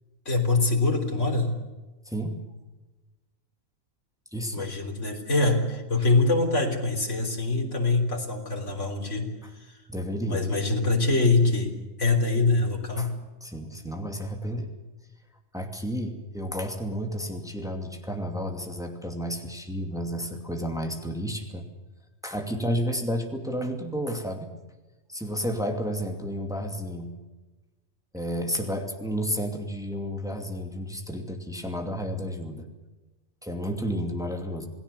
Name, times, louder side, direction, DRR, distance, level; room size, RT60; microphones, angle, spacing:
voice 1, 0.3-1.6 4.5-9.7 10.3-11.7 12.0-13.2, left 3 dB, 65° left, 1 dB, 3.9 m, -24 dB
voice 2, 2.1-2.4 4.3-4.7 9.9-10.5 13.0-13.1 13.4-14.7 15.5-21.7 22.2-24.5 25.1-27.1 28.1-32.7 33.4-34.6, equal, 5° right, 3 dB, 2.5 m, -31 dB
28.0 x 18.5 x 7.0 m, 1.2 s
omnidirectional pair, 1.4 m